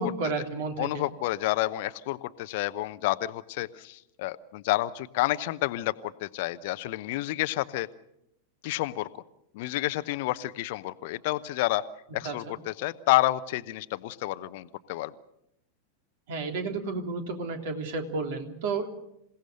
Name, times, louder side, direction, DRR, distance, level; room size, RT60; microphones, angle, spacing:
voice 1, 0.0-1.0 12.2-12.3 16.3-18.9, right 3 dB, 55° right, 5 dB, 3.2 m, -31 dB
voice 2, 0.8-7.9 8.6-9.2 9.5-11.8 12.1-15.1, left 17 dB, 50° left, 15 dB, 0.8 m, -29 dB
27.5 x 17.5 x 6.7 m, 0.79 s
figure-of-eight pair, 90°, 0 cm